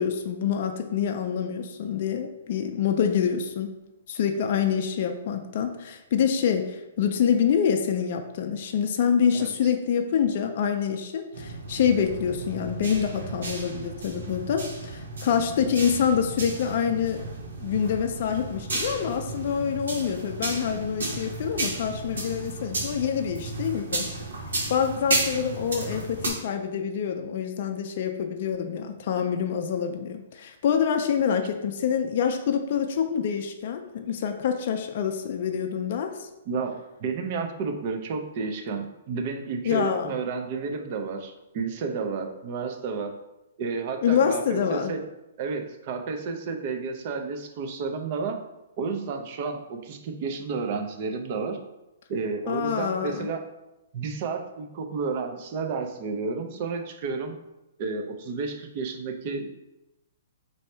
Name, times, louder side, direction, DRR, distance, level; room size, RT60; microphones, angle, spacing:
voice 1, 0.0-3.7 4.1-17.2 17.6-24.1 24.7-36.3 39.6-40.1 44.0-44.9 52.5-53.3, left 7 dB, 50° left, 5 dB, 0.4 m, -26 dB
voice 2, 9.3-9.7 36.5-43.1 43.6-45.0 45.4-48.4 48.8-51.6 52.1-53.5 53.9-57.4 57.8-59.5, right 4 dB, 40° right, 5 dB, 0.5 m, -31 dB
sound 1, 11.3-26.3, right 2 dB, 90° right, 0.9 m, -33 dB
3.2 x 2.7 x 4.3 m, 0.94 s
hypercardioid pair, 150°, 0 cm